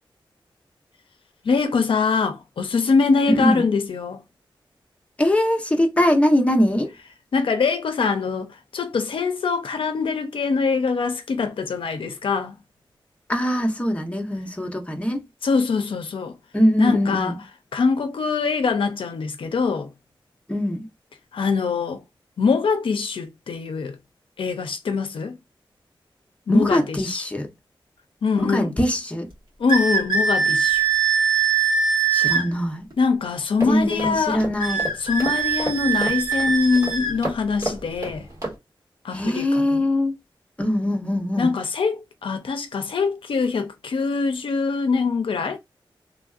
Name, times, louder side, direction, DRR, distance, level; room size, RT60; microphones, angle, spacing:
voice 1, 1.4-4.2 7.3-12.5 15.4-16.4 16.8-17.3 17.7-19.9 21.3-22.0 22.4-24.0 24.4-25.4 26.5-27.2 28.2-28.7 29.6-30.9 32.3-32.5 33.0-34.4 35.0-38.3 39.0-39.8 41.4-45.6, left 5 dB, 80° left, 0.5 m, -23 dB
voice 2, 3.3-3.6 5.2-6.9 13.3-15.2 16.5-17.3 20.5-20.9 26.5-27.5 28.4-29.3 32.1-32.9 33.7-34.8 39.1-40.1 40.6-41.6, left 1 dB, 15° left, 0.8 m, -22 dB
sound 1, 29.7-32.5 34.6-37.2, right 6 dB, 60° right, 1.5 m, -22 dB
sound 2, 33.6-38.6, right 2 dB, 40° right, 1.9 m, -33 dB
3.2 x 2.5 x 2.3 m
wide cardioid pair, 85°, 9 cm